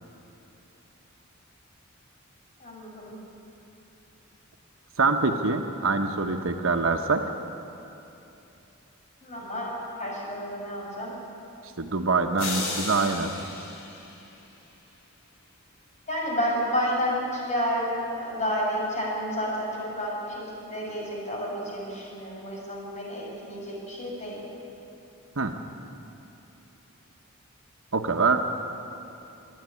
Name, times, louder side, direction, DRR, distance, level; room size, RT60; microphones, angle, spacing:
voice 1, 2.6-3.1 9.2-9.7 10.0-11.1 16.1-17.9 18.1-24.4, equal, 35° left, -3 dB, 6.6 m, -30 dB
voice 2, 5.0-7.2 11.8-13.3 25.4-25.5 27.9-28.5, right 4 dB, 70° right, 5 dB, 1.1 m, -24 dB
sound 1, 12.4-14.7, left 3 dB, 70° left, 4.0 m, -35 dB
26.5 x 10.5 x 9.8 m, 2.9 s
head